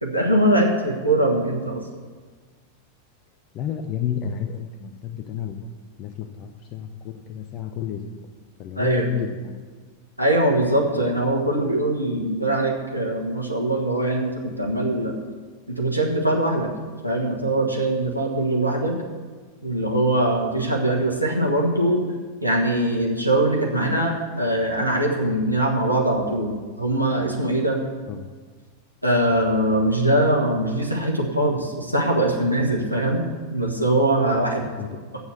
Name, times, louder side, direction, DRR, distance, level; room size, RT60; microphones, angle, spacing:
voice 1, 0.0-1.8 8.8-9.1 10.2-15.1 15.7-16.7 17.0-19.0 19.6-22.0 22.4-27.8 29.0-33.2 33.5-34.7, right 1 dB, 85° right, -1 dB, 1.3 m, -22 dB
voice 2, 3.5-5.7 6.0-8.3 8.6-9.6 28.1-28.3 34.8-34.9, left 8 dB, 35° left, 5 dB, 0.7 m, -31 dB
8.0 x 6.9 x 7.9 m, 1.5 s
figure-of-eight pair, 90°, 0 cm